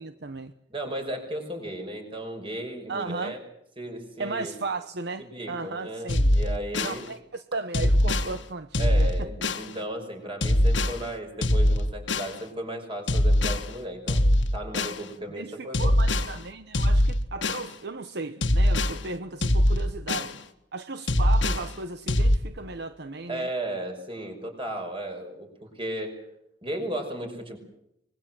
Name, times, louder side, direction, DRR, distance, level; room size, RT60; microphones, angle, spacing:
voice 1, 0.0-0.5 2.9-3.4 4.2-6.4 6.8-9.3 15.3-20.4 20.7-23.5, right 3 dB, 60° right, 10 dB, 0.9 m, -35 dB
voice 2, 0.7-3.4 3.8-4.5 5.2-7.1 8.8-14.3 14.5-15.9 23.3-26.2 26.6-27.6, right 1 dB, 30° right, 4 dB, 5.5 m, -35 dB
sound 1, 6.1-7.0 7.7-8.3 8.7-9.7 10.4-11.0 11.4-12.3 13.1-13.7 14.1-15.0 15.7-16.3 16.7-17.7 18.4-19.0 19.4-20.3 21.1-21.7 22.1-22.4, left 1 dB, 85° left, 1.7 m, -22 dB
25.0 x 21.0 x 7.6 m, 0.80 s
head